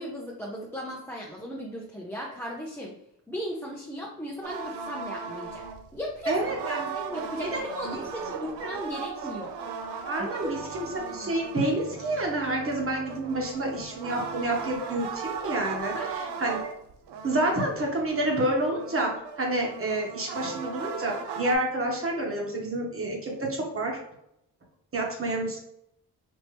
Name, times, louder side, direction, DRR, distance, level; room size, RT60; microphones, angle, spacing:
voice 1, 0.0-2.9 3.3-5.6 5.9-6.4 6.6-9.6 10.4-10.5 10.7-11.3 15.9-16.2, equal, 5° left, -3 dB, 0.6 m, -36 dB
sound 1, 4.4-21.5, right 6 dB, 70° right, 0.6 m, -37 dB
voice 2, 6.3-6.9 7.4-8.0 8.3-8.8 10.0-16.6 17.2-24.0 24.9-25.6, right 1 dB, 30° right, -1 dB, 1.4 m, -29 dB
4.4 x 2.8 x 3.3 m, 0.76 s
cardioid pair, 90°, 41 cm